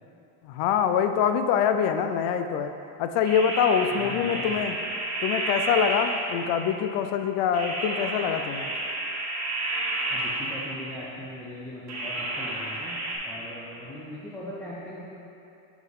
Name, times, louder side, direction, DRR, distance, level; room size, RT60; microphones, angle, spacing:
voice 1, 0.4-2.7 3.0-4.8 5.2-8.7, left 7 dB, 65° left, 8 dB, 0.5 m, -25 dB
sound 1, 3.2-6.6 7.5-10.9 11.9-13.2, right 2 dB, 35° right, 1.5 m, -31 dB
voice 2, 4.0-4.7 10.1-13.0 13.2-15.1, left 1 dB, 5° left, -8 dB, 0.3 m, -40 dB
5.9 x 5.7 x 3.6 m, 2.9 s
cardioid pair, 140°, 47 cm